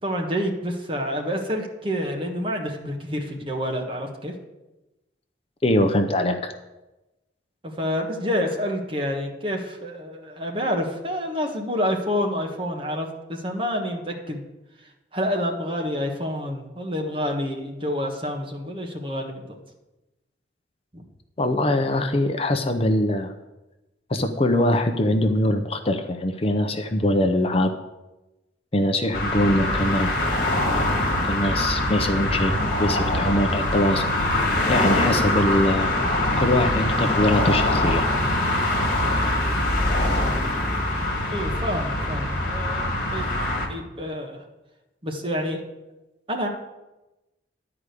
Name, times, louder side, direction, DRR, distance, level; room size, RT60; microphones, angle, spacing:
voice 1, 0.0-4.3 7.6-14.4 15.1-19.5 20.9-21.0 41.3-43.3 43.7-44.4 45.0-45.6 46.3-46.5, equal, 30° right, 1 dB, 1.3 m, -28 dB
voice 2, 5.6-6.5 21.4-23.3 24.1-27.7 28.7-30.1 31.2-32.5 32.8-34.0 34.7-35.9 36.4-38.0, left 1 dB, 30° left, 5 dB, 0.6 m, -22 dB
sound 1, 29.1-43.7, left 1 dB, 45° left, 1.8 m, -23 dB
11.0 x 4.9 x 8.2 m, 1.0 s
head